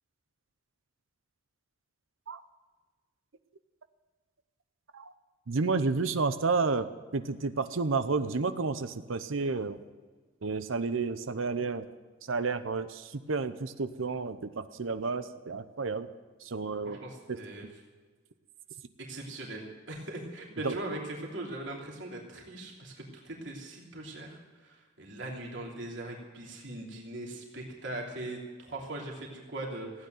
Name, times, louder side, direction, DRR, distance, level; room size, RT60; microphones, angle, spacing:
voice 1, 5.5-6.9 7.1-9.8 10.4-11.8 12.2-16.1 16.4-17.0 17.3-17.4 20.6-20.8, right 4 dB, 85° right, 11 dB, 0.7 m, -31 dB
voice 2, 16.8-17.7 19.0-30.1, right 1 dB, 70° right, -1 dB, 3.1 m, -40 dB
16.0 x 9.3 x 9.4 m, 1.4 s
head